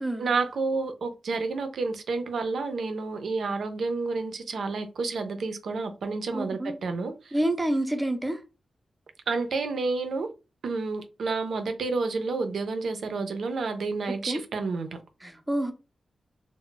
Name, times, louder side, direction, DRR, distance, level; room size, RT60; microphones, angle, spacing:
voice 1, 0.2-7.3 9.3-10.3 10.6-14.9, right 3 dB, 75° right, 0.4 m, -30 dB
voice 2, 6.3-6.8 7.3-8.4 14.3-14.4 15.2-15.7, right 1 dB, 10° right, 0.4 m, -28 dB
2.2 x 2.0 x 3.7 m
wide cardioid pair, 145°, 0 cm